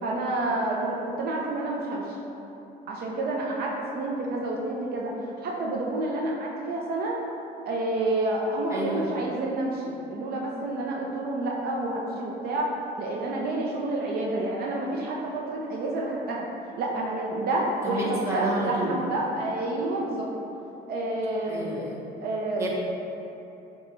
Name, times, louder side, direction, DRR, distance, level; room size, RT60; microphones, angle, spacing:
voice 1, 0.0-2.1 2.9-7.2 7.6-16.5 16.8-20.3 20.9-21.7 22.2-22.7, right 2 dB, 65° right, -2 dB, 0.6 m, -29 dB
voice 2, 8.7-9.1 17.8-19.0 21.4-22.0 22.6-22.7, right 2 dB, 15° right, -5 dB, 0.9 m, -30 dB
6.5 x 2.3 x 3.1 m, 3.0 s
cardioid pair, 110°, 17 cm